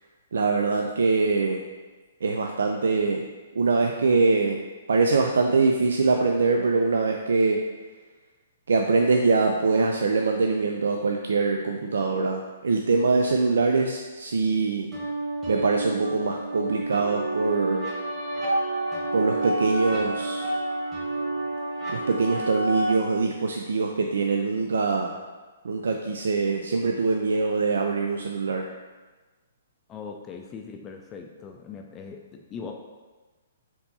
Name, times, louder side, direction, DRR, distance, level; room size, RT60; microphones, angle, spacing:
voice 1, 0.3-1.6 2.2-3.2 3.6-4.6 4.9-7.6 8.7-14.9 15.5-17.9 19.1-20.5 21.9-25.2 25.6-28.7, right 4 dB, 85° right, 2 dB, 0.3 m, -23 dB
sound 1, 14.9-22.9, right 1 dB, 15° right, 1.3 m, -29 dB
voice 2, 29.9-32.7, left 5 dB, 20° left, 3 dB, 0.4 m, -40 dB
4.3 x 2.8 x 4.0 m, 1.3 s
hypercardioid pair, 150°, 0 cm